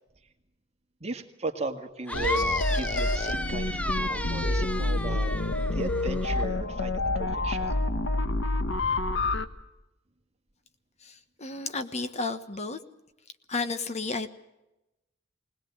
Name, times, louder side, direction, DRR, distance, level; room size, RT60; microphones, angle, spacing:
voice 1, 1.0-5.3 5.7-7.7, right 3 dB, 35° right, 4 dB, 2.0 m, -37 dB
sound 1, 2.1-9.5, left 2 dB, 80° left, 1.3 m, -28 dB
sound 2, 2.1-6.4, left 1 dB, 5° left, 0.8 m, -33 dB
voice 2, 11.0-12.8 13.5-14.3, left 3 dB, 35° left, 9 dB, 1.2 m, -32 dB
21.5 x 20.0 x 7.9 m, 0.96 s
head